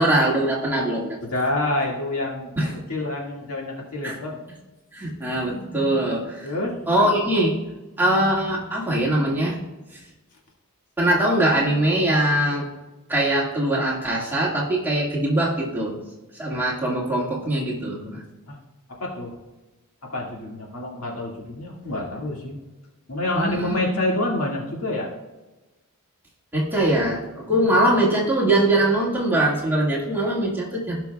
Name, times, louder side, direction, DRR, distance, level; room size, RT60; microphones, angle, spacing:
voice 1, 0.0-1.2 2.6-2.7 4.0-4.2 4.9-6.5 6.9-7.5 8.0-9.6 11.0-12.7 13.1-15.9 16.4-18.2 23.4-23.8 26.5-31.0, right 1 dB, 10° right, -5 dB, 1.9 m, -22 dB
voice 2, 1.2-4.4 6.4-6.8 18.5-18.6 19.0-19.3 20.1-22.6 23.1-25.1, left 1 dB, 75° left, -2 dB, 2.0 m, -27 dB
16.5 x 5.9 x 2.3 m, 1.1 s
head